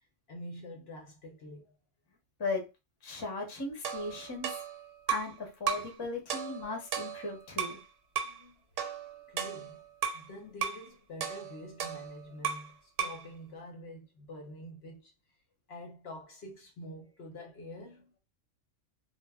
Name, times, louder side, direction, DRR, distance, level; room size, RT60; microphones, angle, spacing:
voice 1, 0.3-1.8 8.2-8.5 9.3-9.8 10.1-15.1 15.7-18.1, left 1 dB, 60° left, 0.8 m, -46 dB
voice 2, 3.0-4.6 5.1-7.8, left 3 dB, 30° left, 0.5 m, -37 dB
sound 1, 3.8-5.4 5.7-6.0 6.3-7.8 8.2-8.4 8.8-10.3 10.6-10.9 11.2-12.7 13.0-13.3, right 8 dB, 80° right, 1.0 m, -35 dB
2.1 x 2.0 x 3.3 m
omnidirectional pair, 1.3 m